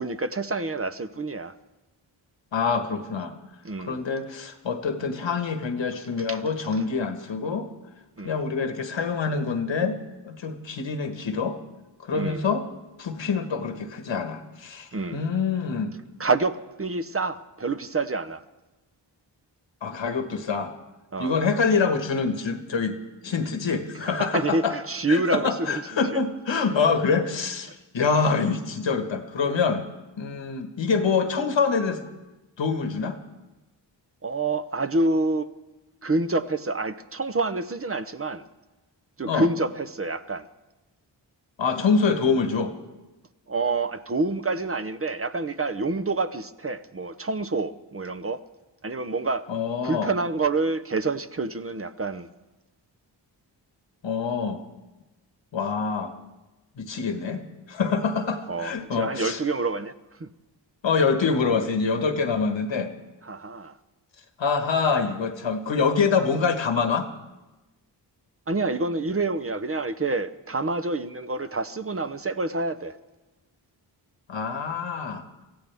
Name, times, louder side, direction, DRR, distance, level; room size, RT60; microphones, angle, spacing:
voice 1, 0.0-1.5 3.6-4.0 6.3-6.4 6.7-6.8 8.2-8.4 12.1-12.4 14.9-15.2 16.2-18.4 21.1-21.3 24.0-25.8 34.2-35.5 36.0-38.4 39.2-40.5 43.5-48.4 48.8-49.5 49.8-52.3 58.5-59.9 60.2-60.3 63.2-63.8 68.5-72.9, right 3 dB, 30° right, 0.7 m, -27 dB
voice 2, 2.5-3.3 3.8-7.7 8.2-10.0 10.2-11.6 12.0-12.6 13.0-15.9 19.8-20.7 21.2-23.0 23.2-24.7 25.1-29.8 30.2-32.0 32.6-33.2 39.3-39.5 41.6-42.7 49.5-50.1 54.0-54.6 55.5-56.1 56.8-57.4 57.7-59.4 60.8-62.9 64.4-67.1 74.3-75.2, left 5 dB, 80° left, 1.5 m, -25 dB
24.5 x 15.0 x 3.5 m
cardioid pair, 65°, 45 cm